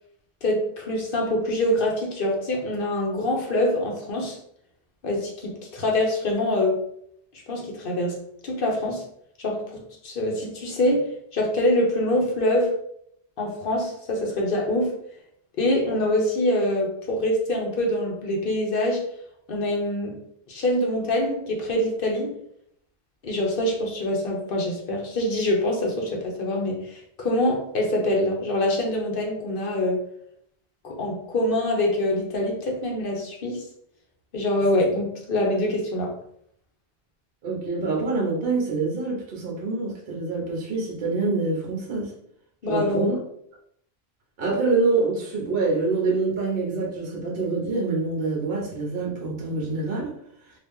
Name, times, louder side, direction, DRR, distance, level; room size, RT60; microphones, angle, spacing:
voice 1, 0.4-4.4 5.0-6.8 7.5-8.2 8.4-9.0 9.4-12.7 13.4-14.9 15.6-19.0 19.5-20.1 20.5-22.3 23.2-30.0 30.8-33.6 34.3-36.1 42.6-43.1, left 1 dB, 55° left, -1 dB, 0.9 m, -25 dB
voice 2, 37.4-42.1 42.7-43.2 44.4-50.1, right 3 dB, 60° right, -2 dB, 1.0 m, -26 dB
2.7 x 2.5 x 3.5 m, 0.70 s
omnidirectional pair, 1.1 m